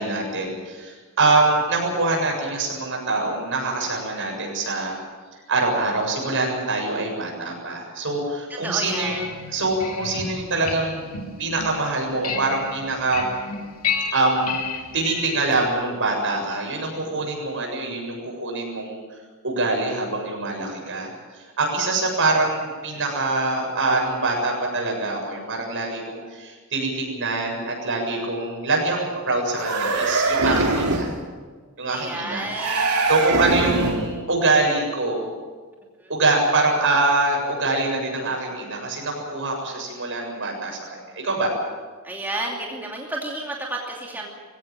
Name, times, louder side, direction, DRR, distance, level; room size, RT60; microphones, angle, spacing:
voice 1, 0.0-5.0 5.5-9.1 9.5-11.0 11.4-13.2 14.1-14.6 14.9-19.0 19.4-21.1 21.6-31.0 31.8-32.5 33.1-35.3 36.1-41.5, right 2 dB, 60° right, 1 dB, 7.4 m, -24 dB
voice 2, 8.5-9.2 22.9-23.0 30.4-31.0 31.9-33.7 36.0-36.1 42.0-44.3, right 2 dB, 10° right, -2 dB, 2.7 m, -31 dB
sound 1, 8.9-15.7, left 5 dB, 70° left, 2.7 m, -32 dB
sound 2, 29.5-31.2 32.5-34.1, right 3 dB, 90° right, 3.1 m, -22 dB
21.5 x 16.5 x 9.0 m, 1.5 s
head